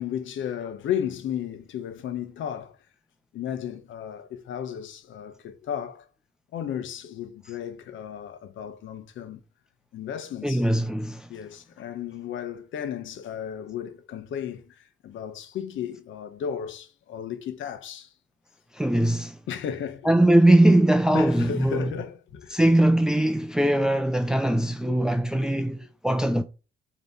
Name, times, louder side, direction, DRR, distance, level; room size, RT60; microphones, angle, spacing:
voice 1, 0.0-2.8 3.3-6.1 6.5-9.4 9.9-10.7 11.3-18.1 19.5-20.1 21.1-22.6 24.9-25.0 25.4-25.6, left 9 dB, 75° left, 1.2 m, -34 dB
voice 2, 10.4-11.3 18.7-19.4 20.0-21.9 22.5-26.4, right 1 dB, 5° right, 0.6 m, -21 dB
8.0 x 3.3 x 4.2 m
cardioid pair, 90°, 20 cm